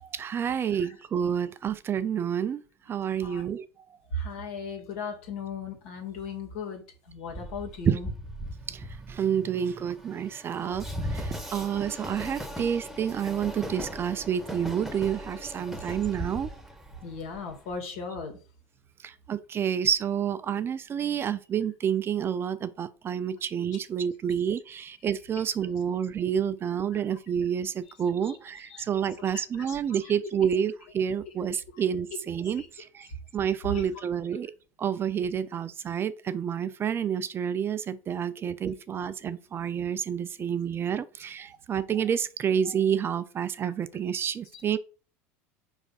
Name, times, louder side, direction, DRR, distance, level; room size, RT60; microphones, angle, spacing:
voice 1, 0.1-2.6 2.9-3.6 7.9-8.0 8.7-16.5 19.0-33.1 33.3-34.5 34.8-44.8, right 8 dB, 30° right, 0.5 m, -29 dB
voice 2, 4.1-8.1 15.9-16.0 17.0-18.4 23.7-23.8 26.7-27.0 27.8-28.4 28.7-28.9 29.3-30.2 31.7-31.8 32.1-32.2 32.4-32.7 33.1-33.2 33.6-34.0 44.5-44.6, left 3 dB, 75° left, 2.3 m, -38 dB
Train, 7.3-17.8, equal, ahead, 0.9 m, -38 dB
4.8 x 3.5 x 5.6 m
supercardioid pair, 105°, 8 cm